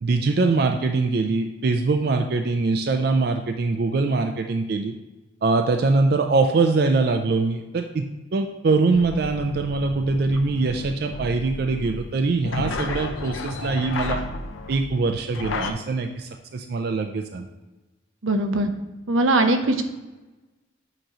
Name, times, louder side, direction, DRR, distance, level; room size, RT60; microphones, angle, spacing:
voice 1, 0.0-4.9 5.4-8.0 8.3-14.2 14.7-17.5, right 3 dB, 50° right, 6 dB, 0.3 m, -23 dB
sound 1, 8.9-15.7, left 3 dB, 85° left, 0.5 m, -33 dB
voice 2, 18.2-18.7 19.1-19.8, right 2 dB, 90° right, 6 dB, 0.7 m, -20 dB
7.8 x 3.0 x 4.8 m, 1.1 s
head